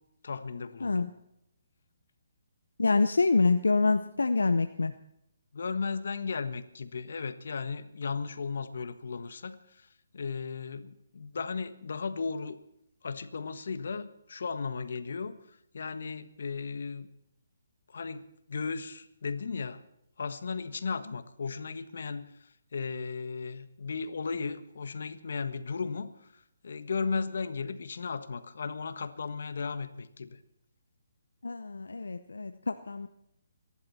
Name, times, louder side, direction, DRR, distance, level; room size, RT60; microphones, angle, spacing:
voice 1, 0.2-1.1 5.5-9.9 10.1-12.6 13.0-15.4 15.7-17.1 17.9-18.2 18.5-19.8 20.2-22.3 22.7-26.1 26.6-30.4, left 5 dB, 70° left, 11 dB, 1.4 m, -35 dB
voice 2, 2.8-4.9 31.4-33.1, left 3 dB, 85° left, 10 dB, 0.8 m, -26 dB
27.0 x 11.5 x 4.3 m, 0.79 s
hypercardioid pair, 150°, 0 cm